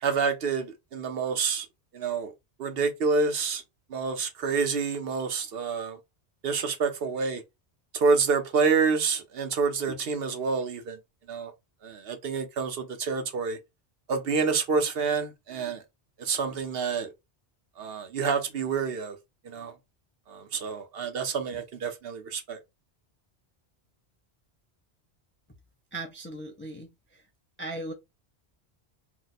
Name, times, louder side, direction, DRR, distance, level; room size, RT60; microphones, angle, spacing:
voice 1, 0.0-1.7 1.9-2.3 2.6-3.6 3.9-6.0 6.4-7.4 7.9-11.0 11.3-11.5 11.8-13.6 14.1-15.8 16.2-17.1 17.8-19.2 19.4-19.7 20.3-22.6, right 5 dB, 65° right, 0.8 m, -28 dB
voice 2, 25.9-27.2 27.6-27.9, right 2 dB, 20° left, 0.3 m, -38 dB
2.8 x 2.2 x 3.9 m
omnidirectional pair, 1.1 m